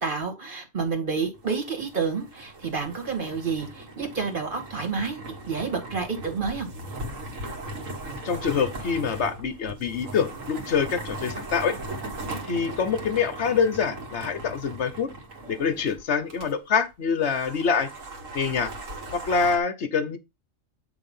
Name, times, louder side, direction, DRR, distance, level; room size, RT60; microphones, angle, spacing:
voice 1, 0.0-6.7, right 5 dB, 40° right, 2.0 m, -29 dB
sound 1, 1.3-16.5 16.8-16.9 17.2-19.6, right 2 dB, 80° right, 1.8 m, -38 dB
voice 2, 8.2-11.7 12.5-15.1 15.5-17.9 18.3-18.7 19.1-20.2, left 6 dB, 65° left, 1.1 m, -25 dB
8.2 x 3.3 x 5.4 m
omnidirectional pair, 1.3 m